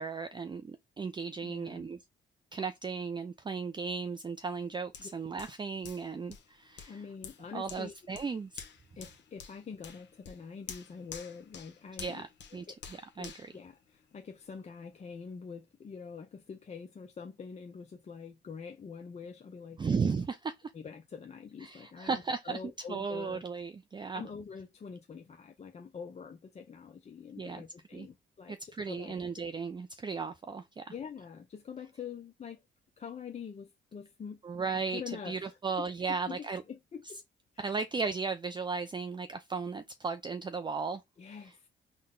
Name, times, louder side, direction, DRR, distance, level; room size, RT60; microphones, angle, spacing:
voice 1, 0.0-2.0 2.5-7.0 7.5-8.6 12.0-12.6 13.2-13.3 19.8-20.5 21.6-22.6 22.9-24.3 27.4-27.6 27.9-28.1 28.5-30.9 34.4-36.6 37.6-41.0, right 5 dB, 25° right, 0.4 m, -35 dB
voice 2, 1.4-1.9 5.0-5.1 6.8-7.9 9.0-12.2 12.5-12.7 13.2-19.9 20.7-23.4 24.1-28.6 28.9-29.2 30.9-32.6 33.0-34.4 34.9-37.2 37.5-37.8 41.2-41.7, left 6 dB, 35° left, 0.5 m, -45 dB
Hands, 4.9-14.5 14.9-15.1, left 7 dB, 65° left, 1.0 m, -50 dB
3.8 x 2.1 x 3.6 m
cardioid pair, 90°, 20 cm